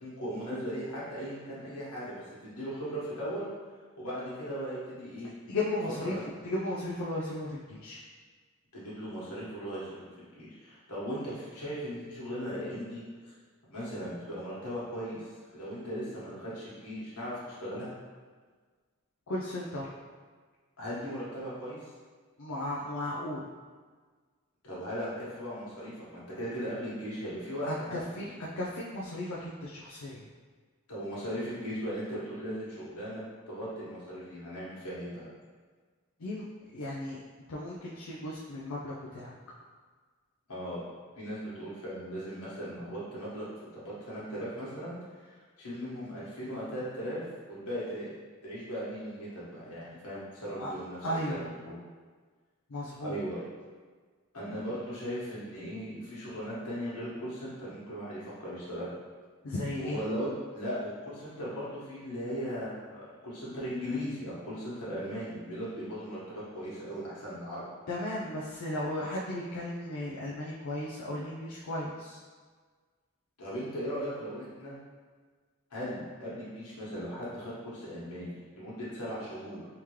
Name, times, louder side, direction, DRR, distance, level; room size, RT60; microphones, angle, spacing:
voice 1, 0.0-3.5 4.0-5.3 6.1-6.3 8.7-10.1 10.3-13.3 13.7-17.9 20.8-21.9 24.6-28.3 30.9-35.2 40.5-40.8 41.1-43.5 43.7-47.2 47.5-48.1 48.4-51.8 53.0-53.4 54.3-58.9 59.8-67.7 73.4-74.8 75.7-79.7, equal, 85° left, -8 dB, 1.4 m, -38 dB
voice 2, 5.5-6.2 6.4-8.0 19.3-19.9 22.4-23.4 27.6-28.3 28.6-30.2 36.2-36.4 36.7-37.2 37.5-39.3 50.6-50.7 51.0-51.4 52.7-53.2 59.4-60.0 67.9-72.2, left 1 dB, 65° left, -6 dB, 0.5 m, -35 dB
3.5 x 2.9 x 3.1 m, 1.5 s
head